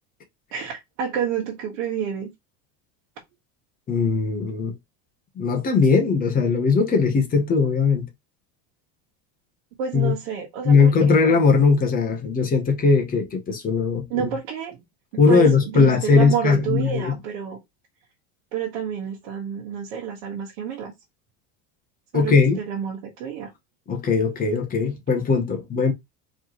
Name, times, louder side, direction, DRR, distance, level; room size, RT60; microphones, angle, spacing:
voice 1, 0.5-2.3 9.8-11.2 14.1-14.8 15.1-17.6 18.5-20.9 22.1-23.5, right 8 dB, 80° right, 1.4 m, -29 dB
voice 2, 3.9-4.7 5.4-8.1 9.9-10.1 10.6-14.3 15.2-17.2 22.1-22.6 23.9-25.9, left 5 dB, 20° left, 0.9 m, -19 dB
4.2 x 3.2 x 3.0 m
cardioid pair, 165°, 41 cm